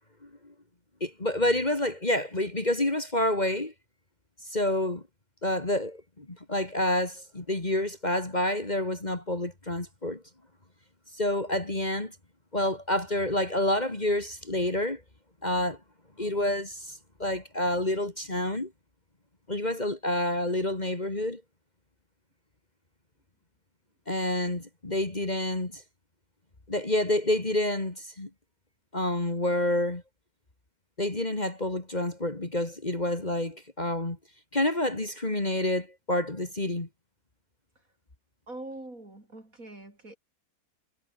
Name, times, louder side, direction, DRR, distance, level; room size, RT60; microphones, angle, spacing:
voice 1, 0.2-0.5 1.0-3.7 4.4-5.0 5.4-10.2 11.1-12.2 12.5-15.0 15.4-15.8 16.2-18.7 19.5-21.4 24.1-25.8 26.7-28.3 28.9-30.0 31.0-34.2 34.5-36.9, left 1 dB, 30° left, 2.8 m, -28 dB
voice 2, 38.5-40.2, right 2 dB, 65° right, 6.4 m, -43 dB
omnidirectional pair, 1.6 m